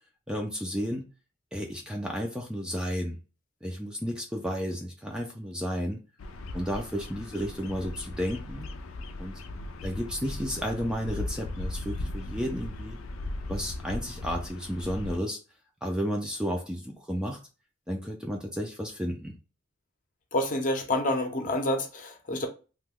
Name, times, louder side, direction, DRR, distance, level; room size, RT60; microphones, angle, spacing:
voice 1, 0.3-1.1 1.5-3.2 3.6-6.0 6.5-8.7 9.2-9.4 9.8-13.0 13.5-15.4 15.8-17.4 17.9-19.4, equal, 5° right, 0.4 m, -32 dB
Bird vocalization bird call bird song, 6.2-15.2, left 2 dB, 90° left, 0.5 m, -37 dB
voice 2, 20.3-22.5, left 1 dB, 40° left, 0.7 m, -28 dB
3.0 x 2.2 x 3.5 m
head